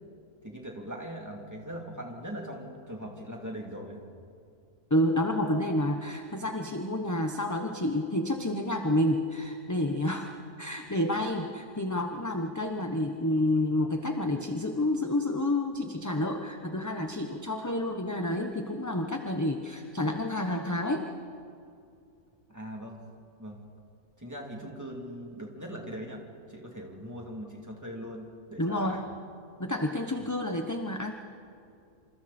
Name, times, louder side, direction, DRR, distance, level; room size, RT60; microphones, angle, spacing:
voice 1, 0.4-4.0 22.5-23.0 23.4-23.6 24.2-29.0, equal, 10° right, -1 dB, 3.2 m, -40 dB
voice 2, 4.9-21.1 28.6-29.0 29.6-31.1, left 1 dB, 15° left, 4 dB, 0.9 m, -29 dB
28.0 x 27.5 x 4.4 m, 2.4 s
omnidirectional pair, 1.6 m